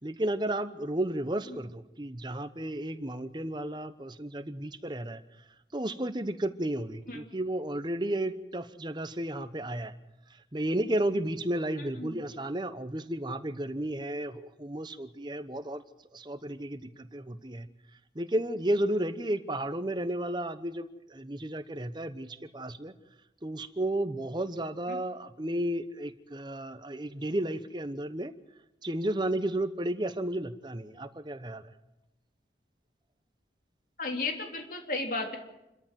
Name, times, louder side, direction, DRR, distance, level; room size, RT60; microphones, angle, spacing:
voice 1, 0.0-5.2 5.7-9.9 10.3-15.8 16.1-17.7 18.1-22.9 23.4-28.3 28.8-31.7, right 1 dB, 25° right, 12 dB, 1.0 m, -33 dB
voice 2, 34.0-35.4, left 3 dB, 50° left, 3 dB, 3.3 m, -33 dB
28.0 x 13.5 x 7.6 m, 0.94 s
head